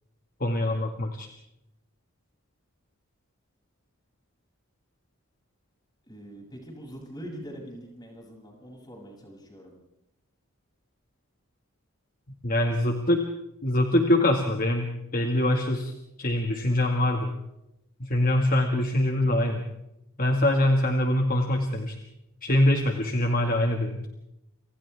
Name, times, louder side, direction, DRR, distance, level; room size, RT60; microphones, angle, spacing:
voice 1, 0.4-1.3 12.4-13.2 13.6-15.9 16.2-17.3 18.0-19.7 20.2-21.9 22.4-24.1, left 1 dB, 40° left, 3 dB, 1.9 m, -24 dB
voice 2, 6.1-9.7, equal, 20° left, -1 dB, 7.3 m, -43 dB
30.0 x 26.0 x 3.6 m, 0.86 s
head